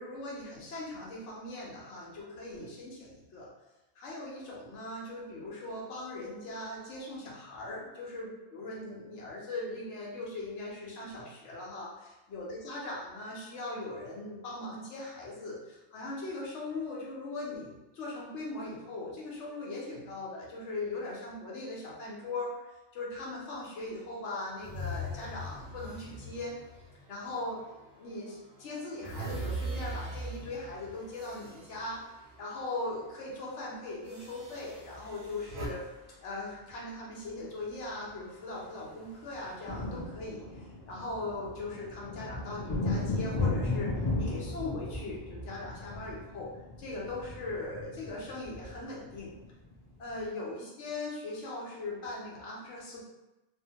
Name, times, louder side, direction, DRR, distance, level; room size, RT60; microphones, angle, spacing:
voice 1, 0.0-3.5 4.0-26.5 27.1-27.6 27.9-32.1 32.4-35.9 36.2-46.5 46.8-49.4 50.0-53.0, left 2 dB, 85° left, -4 dB, 1.1 m, -40 dB
sound 1, 24.6-27.9 28.4-32.7 33.0-33.3 34.1-35.7, right 1 dB, 85° right, 1.0 m, -41 dB
sound 2, 34.5-36.0 37.3-37.4 37.6-37.8 38.1-50.2, left 2 dB, 30° left, 0.5 m, -36 dB
2.8 x 2.1 x 2.8 m, 1.0 s
omnidirectional pair, 1.1 m